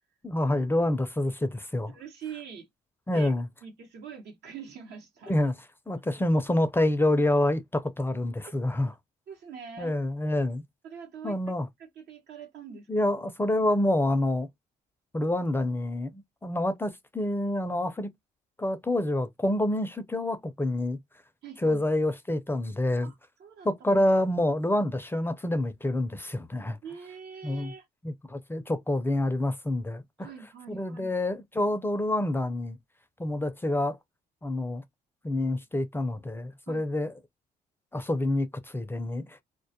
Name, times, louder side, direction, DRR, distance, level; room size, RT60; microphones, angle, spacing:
voice 1, 0.2-1.9 3.1-3.5 5.3-5.5 5.9-8.9 9.8-10.6 11.2-11.7 12.9-14.5 15.1-18.1 18.6-21.0 21.6-23.1 23.6-26.8 27.4-27.7 28.0-30.3 30.7-32.8 33.2-34.0 34.4-34.8 35.2-37.1 37.9-39.4, left 1 dB, 15° left, 0.4 m, -27 dB
voice 2, 1.9-2.7 3.1-3.3 3.6-5.4 9.3-9.9 10.8-11.4 11.8-13.1 21.4-21.9 23.0-24.0 26.8-27.9 30.2-31.1 36.7-36.8, right 7 dB, 75° right, 0.9 m, -44 dB
2.2 x 2.1 x 2.7 m
supercardioid pair, 70°, 17 cm